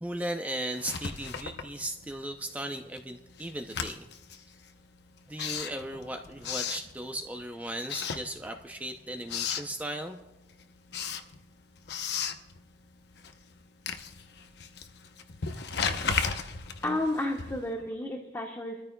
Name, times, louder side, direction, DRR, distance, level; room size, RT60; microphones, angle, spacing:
voice 1, 0.0-4.1 5.3-10.2, right 1 dB, 10° right, 5 dB, 0.5 m, -37 dB
Writing, 0.7-2.3 2.6-7.4 7.8-8.8 9.1-9.7 10.2-17.8, left 6 dB, 65° left, 0.8 m, -36 dB
voice 2, 16.8-18.8, left 1 dB, 15° left, 1 dB, 1.0 m, -31 dB
24.5 x 13.5 x 2.2 m, 1.0 s
head